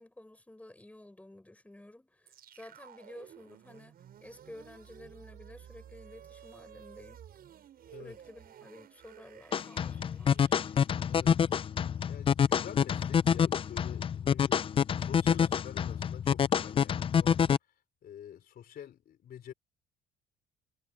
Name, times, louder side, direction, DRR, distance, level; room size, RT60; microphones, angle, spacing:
voice 1, 0.0-7.2 8.0-10.4, left 1 dB, 5° left, 6.8 m, -52 dB
sound 1, 2.3-12.5, right 10 dB, 55° right, 7.3 m, -54 dB
sound 2, 9.5-17.6, left 8 dB, 30° left, 0.4 m, -27 dB
voice 2, 11.1-11.4 12.1-14.6 15.0-17.5 18.0-19.5, left 10 dB, 55° left, 3.7 m, -47 dB
cardioid pair, 115°, 19 cm